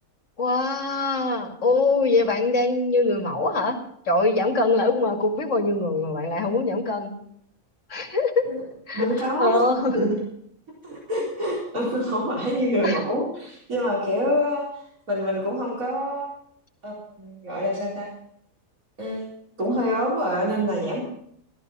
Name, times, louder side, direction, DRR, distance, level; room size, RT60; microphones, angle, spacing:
voice 1, 0.4-3.8 4.0-7.1 7.9-8.5 8.9-10.0 12.8-13.1, left 2 dB, 60° left, 2 dB, 2.6 m, -23 dB
voice 2, 8.9-9.6 9.9-10.2 10.8-14.8 15.1-16.3 16.8-18.1 19.0-19.3 19.6-21.0, equal, 85° right, -5 dB, 4.7 m, -26 dB
14.5 x 13.5 x 5.4 m, 0.68 s
omnidirectional pair, 1.4 m